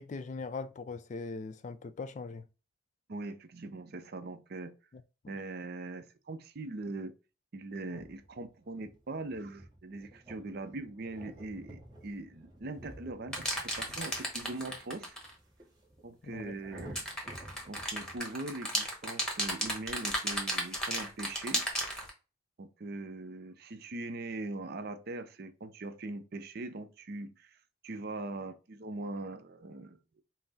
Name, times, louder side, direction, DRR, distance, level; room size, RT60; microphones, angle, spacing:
voice 1, 0.0-2.5 4.9-5.3 16.2-16.5, left 4 dB, 35° left, 0.3 m, -41 dB
voice 2, 3.1-4.7 5.3-7.1 7.5-15.2 16.0-17.0 17.7-21.7 22.6-27.6 27.8-30.2, right 2 dB, 50° right, 0.5 m, -41 dB
sound 1, 7.8-18.2, right 1 dB, 20° right, 1.0 m, -52 dB
sound 2, 13.3-15.3 16.8-22.1, equal, 5° left, 1.1 m, -34 dB
5.6 x 2.0 x 4.0 m
head